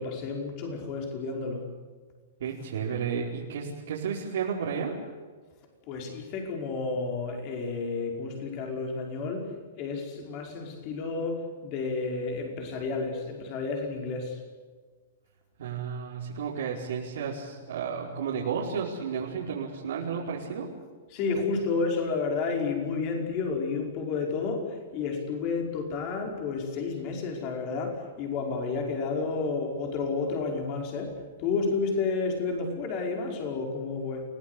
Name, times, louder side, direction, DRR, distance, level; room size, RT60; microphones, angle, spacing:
voice 1, 0.0-1.6 5.9-9.5 9.8-14.4 21.1-31.1 31.4-34.2, left 4 dB, 30° left, 2 dB, 5.3 m, -31 dB
voice 2, 2.4-4.9 15.6-20.7, right 6 dB, 65° right, -5 dB, 4.9 m, -32 dB
29.0 x 17.5 x 8.3 m, 1.5 s
hypercardioid pair, 175°, 0 cm